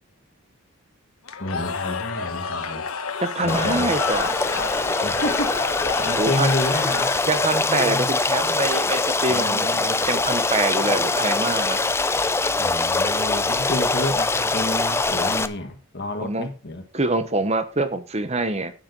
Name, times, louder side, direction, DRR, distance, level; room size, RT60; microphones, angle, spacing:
Cheering / Crowd, 1.2-7.6, left 5 dB, 85° left, 1.4 m, -30 dB
voice 1, 1.4-2.8 3.4-3.9 5.0-5.7 6.0-7.1 7.6-8.1 9.3-10.1 12.6-16.8, left 1 dB, 50° left, 1.7 m, -29 dB
voice 2, 3.2-4.3 6.1-6.5 7.3-11.8 16.2-16.5 16.9-18.7, right 2 dB, 30° right, 1.1 m, -25 dB
Stream, 3.5-15.5, left 3 dB, 10° left, 0.5 m, -23 dB
11.5 x 9.2 x 4.0 m
head